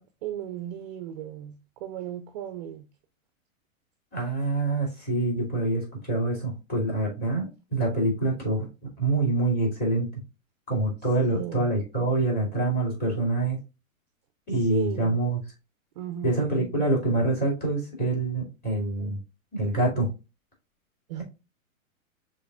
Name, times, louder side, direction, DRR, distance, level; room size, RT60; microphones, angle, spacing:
voice 1, 0.0-1.6 1.8-2.8 11.2-11.7 14.7-15.2 16.0-16.3 21.1-21.2, right 11 dB, 35° right, 0.4 m, -35 dB
voice 2, 4.1-10.1 10.7-13.6 14.5-15.4 16.2-19.2 19.5-20.1 21.2-21.3, right 2 dB, 20° left, 2.7 m, -26 dB
6.8 x 3.0 x 2.4 m
hypercardioid pair, 115°, 41 cm